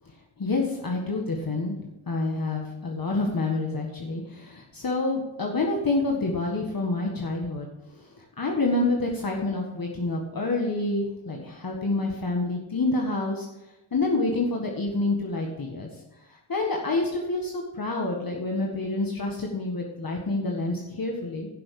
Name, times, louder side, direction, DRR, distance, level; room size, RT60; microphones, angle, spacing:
voice 1, 0.4-7.7 8.0-8.1 8.4-13.5 13.9-15.9 16.3-21.5, left 2 dB, 45° left, 0 dB, 1.7 m, -28 dB
11.0 x 6.2 x 6.5 m, 0.98 s
cardioid pair, 75°, 49 cm